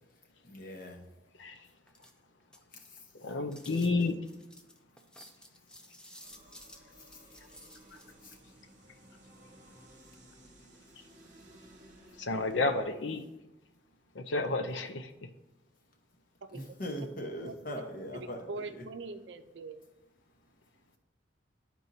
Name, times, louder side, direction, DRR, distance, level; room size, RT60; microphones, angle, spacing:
voice 1, 0.4-1.1 2.7-3.1 6.9-7.2 8.2-8.4 16.5-18.9, equal, 50° left, 2 dB, 1.1 m, -41 dB
voice 2, 1.4-1.7 3.1-4.2 7.4-7.5 7.9-8.0 10.4-10.5 10.9-11.3 11.7-11.8 12.1-13.2 14.1-15.3, left 3 dB, 85° left, 6 dB, 0.6 m, -32 dB
sound 1, 1.9-3.0 3.5-8.0, equal, 5° left, 0.5 m, -53 dB
sound 2, 6.2-13.1, right 1 dB, 45° right, 0.9 m, -57 dB
voice 3, 18.1-19.8, right 3 dB, 70° right, 8 dB, 0.5 m, -42 dB
12.0 x 4.5 x 2.7 m, 0.97 s
head